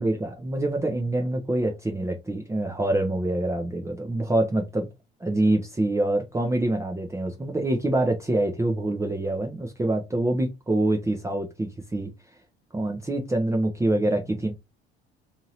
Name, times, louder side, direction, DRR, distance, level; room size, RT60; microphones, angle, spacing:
voice 1, 0.0-4.9 5.2-12.1 12.7-14.5, right 1 dB, 10° right, 0.6 m, -25 dB
2.8 x 2.7 x 2.9 m
hypercardioid pair, 60°, 31 cm